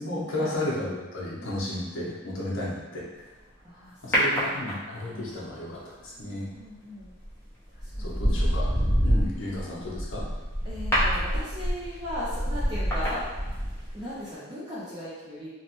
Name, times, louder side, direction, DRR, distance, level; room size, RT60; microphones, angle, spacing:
voice 1, 0.0-3.1 4.0-6.5 8.0-10.2, left 1 dB, 60° left, -5 dB, 0.7 m, -33 dB
voice 2, 3.6-4.2 4.4-4.7 5.1-5.3 6.2-7.1 7.7-8.3 9.4-9.6 10.6-13.2 13.9-15.5, left 1 dB, 20° right, -9 dB, 0.4 m, -38 dB
sound 1, 4.1-5.2 7.0-7.3 7.8-14.0 14.3-14.4, equal, 10° left, 0.7 m, -26 dB
3.0 x 2.1 x 2.9 m, 1.2 s
head